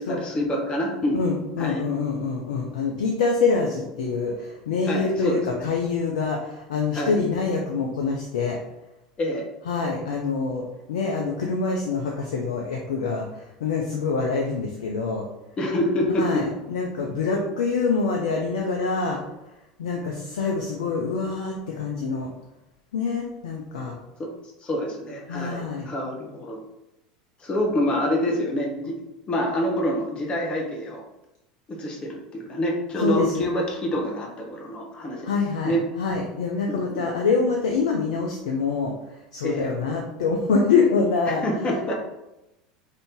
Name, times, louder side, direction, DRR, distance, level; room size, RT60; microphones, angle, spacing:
voice 1, 0.0-1.2 1.6-1.8 4.9-5.7 6.9-7.2 9.2-9.4 15.6-16.3 24.2-24.3 24.6-26.6 27.4-29.0 29.3-31.0 31.7-35.3 35.6-35.8 36.7-37.0 39.4-39.7 41.3-41.9, equal, 25° left, -1 dB, 0.7 m, -26 dB
voice 2, 1.1-8.6 9.7-15.3 16.2-19.2 19.8-22.3 22.9-24.0 25.3-25.9 33.0-33.5 35.2-41.4, left 4 dB, 70° left, 0 dB, 0.4 m, -25 dB
2.6 x 2.6 x 3.4 m, 0.91 s
figure-of-eight pair, 75°, 4 cm